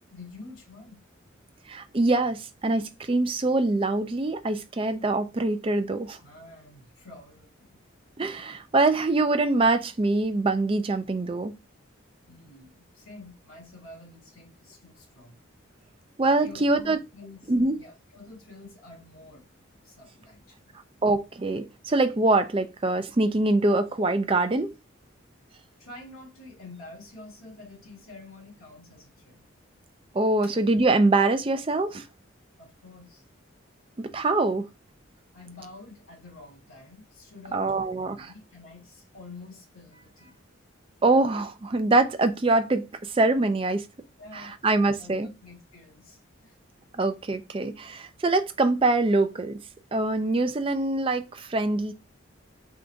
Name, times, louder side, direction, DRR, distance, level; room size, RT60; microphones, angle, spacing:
voice 1, 0.1-1.0 6.2-7.8 12.3-15.4 16.4-17.5 17.8-19.5 19.8-20.7 25.8-29.5 30.4-30.5 32.6-33.2 35.3-40.4 44.2-44.6 45.0-46.6, left 2 dB, 85° left, 1.5 m, -48 dB
voice 2, 1.7-6.2 8.2-11.5 16.2-17.0 17.5-17.8 21.0-24.7 30.1-32.0 34.0-34.7 37.5-38.2 41.0-43.9 44.3-45.3 47.0-49.6 49.9-51.9, right 2 dB, 25° right, 0.4 m, -24 dB
3.7 x 2.5 x 4.4 m
head